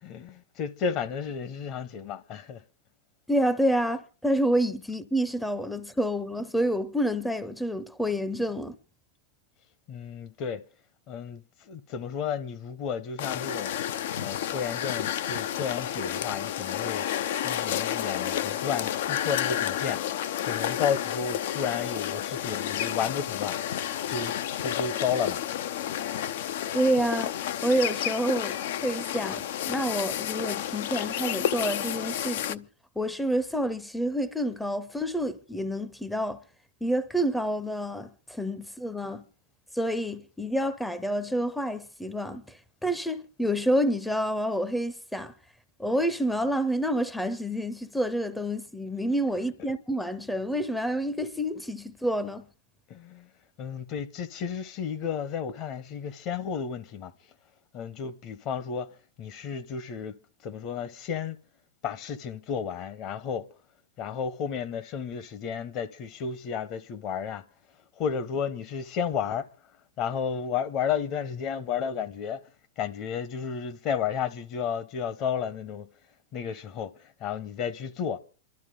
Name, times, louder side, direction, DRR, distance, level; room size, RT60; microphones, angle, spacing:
voice 1, 0.0-2.6 9.9-10.6 11.1-13.7 14.2-17.1 17.4-20.0 20.4-23.6 24.1-25.4 52.9-53.3 53.6-57.1 57.7-58.9 59.2-60.1 60.4-61.4 61.8-63.5 64.0-67.4 68.0-69.5 70.0-72.4 72.8-75.9 76.3-78.2, left 7 dB, 40° left, 1.0 m, -32 dB
voice 2, 3.3-8.8 26.7-27.3 27.6-28.6 28.8-32.7 33.0-36.4 36.8-39.2 39.7-45.3 45.8-52.5, equal, 5° left, 0.6 m, -28 dB
sound 1, 13.2-32.6, left 10 dB, 65° left, 0.6 m, -31 dB
27.5 x 12.0 x 3.8 m
hypercardioid pair, 135°, 0 cm